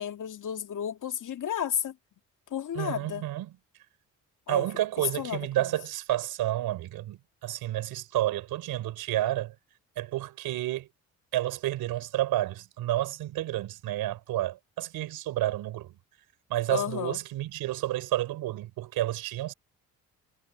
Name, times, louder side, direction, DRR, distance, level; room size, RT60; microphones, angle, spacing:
voice 1, 0.0-1.9 2.5-3.2 4.5-4.7 5.0-5.5 16.7-17.2, left 9 dB, 55° left, 2.4 m, -32 dB
voice 2, 2.7-3.6 4.5-9.5 10.0-10.9 11.3-15.9 16.5-19.5, right 14 dB, 75° right, 3.6 m, -30 dB
supercardioid pair, 65°, 36 cm